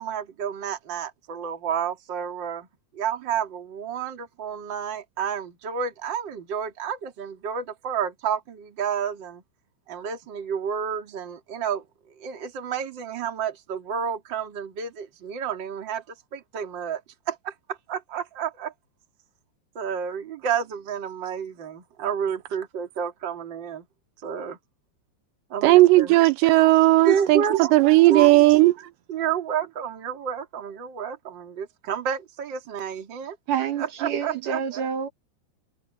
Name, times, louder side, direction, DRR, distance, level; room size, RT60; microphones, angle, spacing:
voice 1, 0.0-2.7 2.9-9.4 9.9-11.8 12.2-16.0 16.3-17.0 17.3-18.7 19.7-23.8 24.2-24.6 25.5-26.2 27.0-28.4 29.1-33.4 33.8-34.9, right 7 dB, 30° right, 2.5 m, -30 dB
voice 2, 25.6-27.4 27.7-28.7, right 19 dB, 85° right, 2.8 m, -16 dB
voice 3, 33.5-35.1, right 8 dB, 55° right, 3.0 m, -28 dB
omnidirectional pair, 5.0 m